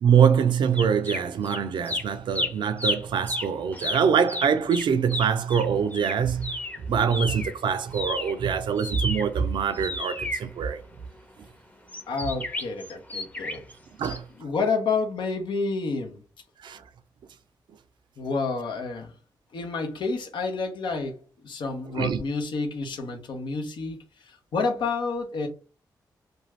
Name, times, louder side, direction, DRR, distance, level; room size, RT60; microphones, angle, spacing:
voice 1, 0.0-6.6 6.9-10.8 12.2-12.3 14.0-14.2 16.6-16.8 21.9-22.2, right 7 dB, 85° right, 0.4 m, -24 dB
sound 1, 0.7-1.6 1.8-7.6 7.9-11.2 11.9-13.7 14.0-14.2, left 1 dB, 20° left, 0.7 m, -32 dB
voice 2, 12.1-13.6 14.4-16.2 18.2-19.1 19.5-25.5, left 4 dB, 85° left, 0.7 m, -29 dB
2.6 x 2.3 x 3.1 m
cardioid pair, 55°, 8 cm